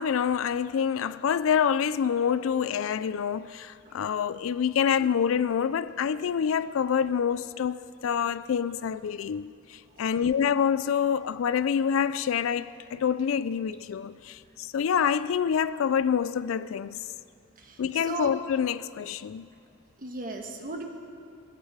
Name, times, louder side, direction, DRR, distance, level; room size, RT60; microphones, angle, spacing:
voice 1, 0.0-17.1 17.8-19.5, left 7 dB, 75° left, 0.4 m, -27 dB
voice 2, 17.6-18.3 20.0-20.8, right 3 dB, 45° right, 1.3 m, -37 dB
16.0 x 15.0 x 4.9 m
head